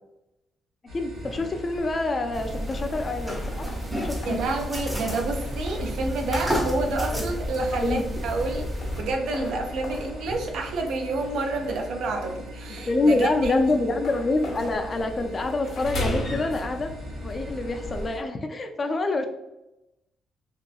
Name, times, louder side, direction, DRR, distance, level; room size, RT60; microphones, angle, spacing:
voice 1, 0.9-3.7 3.9-4.4 7.1-7.2 7.7-8.1 12.9-16.9 17.2-19.2, left 2 dB, 35° left, 6 dB, 0.3 m, -26 dB
sound 1, 0.9-18.2, equal, 55° right, 1.1 m, -41 dB
sound 2, 1.1-18.1, left 1 dB, 70° left, 0.8 m, -39 dB
sound 3, 2.3-9.0, equal, 15° right, 0.6 m, -31 dB
voice 2, 4.2-8.7 9.0-13.6, right 2 dB, 80° right, 3 dB, 0.4 m, -29 dB
2.7 x 2.3 x 2.2 m, 0.92 s
cardioid pair, 90°, 0 cm